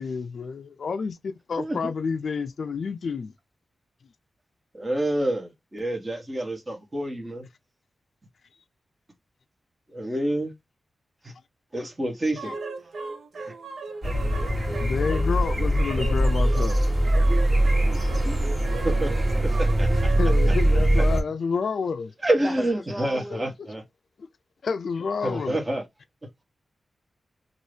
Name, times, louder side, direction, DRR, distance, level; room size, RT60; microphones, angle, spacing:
voice 1, 0.0-3.3 12.4-12.5 14.8-16.8 20.2-22.1 23.3-23.5 24.6-25.6, left 5 dB, 65° left, 0.3 m, -29 dB
voice 2, 1.6-1.9 4.7-7.5 9.9-10.5 11.2-11.3 11.7-12.5 13.3-13.5 18.8-19.1 19.6-19.9 22.2-23.8 25.2-25.8, right 1 dB, 25° right, 1.0 m, -27 dB
sound 1, 12.4-20.7, right 4 dB, 75° right, 0.5 m, -38 dB
sound 2, 14.0-21.2, right 1 dB, 40° right, 1.3 m, -22 dB
voice 3, 16.9-17.5 17.9-18.5 22.4-23.5, equal, 5° right, 0.8 m, -37 dB
2.7 x 2.5 x 3.3 m
wide cardioid pair, 120°, 0 cm